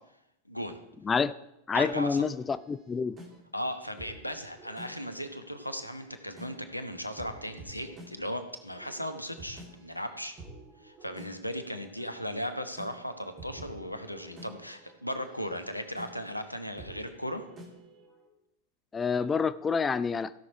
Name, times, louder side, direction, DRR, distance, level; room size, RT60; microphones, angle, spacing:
voice 1, 0.5-0.8 1.7-2.3 3.5-10.3 10.8-17.5, equal, 90° left, 8 dB, 1.0 m, -37 dB
voice 2, 1.7-3.2 18.9-20.4, left 5 dB, 15° left, 15 dB, 0.3 m, -28 dB
sound 1, 1.9-18.3, right 1 dB, 25° right, 2.8 m, -51 dB
16.0 x 6.1 x 4.7 m, 0.86 s
figure-of-eight pair, 90°, 0 cm